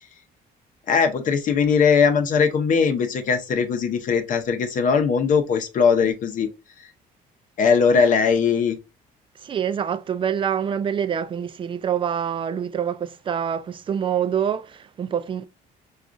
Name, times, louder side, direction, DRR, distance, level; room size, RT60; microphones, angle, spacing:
voice 1, 0.9-6.5 6.8-6.9 7.6-8.8, left 6 dB, 50° left, 0.7 m, -20 dB
voice 2, 9.4-15.5, right 8 dB, 30° right, 0.3 m, -26 dB
4.8 x 2.4 x 2.4 m
cardioid pair, 110°, 17 cm